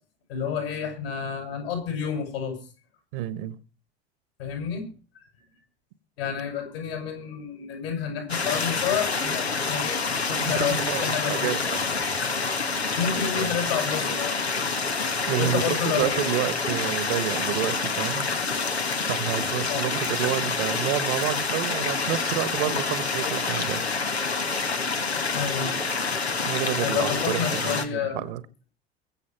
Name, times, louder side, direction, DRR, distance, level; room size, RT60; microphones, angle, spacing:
voice 1, 0.3-2.6 4.4-4.9 5.1-5.2 6.2-11.6 13.0-14.4 15.4-16.4 19.7-20.0 25.3-25.9 26.8-28.3, left 7 dB, 70° left, 4 dB, 7.8 m, -30 dB
voice 2, 3.1-3.5 10.4-11.8 13.4-13.5 15.3-18.3 19.0-23.8 26.5-28.4, right 13 dB, 60° right, 14 dB, 1.5 m, -29 dB
sound 1, 8.3-27.8, left 4 dB, 90° left, 1.5 m, -27 dB
22.5 x 8.3 x 4.7 m, 0.36 s
figure-of-eight pair, 70°, 31 cm